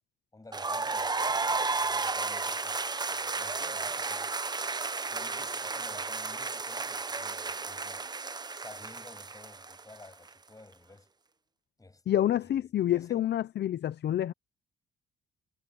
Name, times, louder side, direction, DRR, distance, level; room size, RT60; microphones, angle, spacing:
voice 1, 0.3-4.3 5.1-8.1 8.5-11.1 11.8-13.2, left 2 dB, 20° left, 7.9 m, -53 dB
sound 1, 0.5-10.3, right 4 dB, 20° right, 0.7 m, -33 dB
voice 2, 12.1-14.3, left 11 dB, 60° left, 0.7 m, -28 dB
cardioid pair, 90°, 20 cm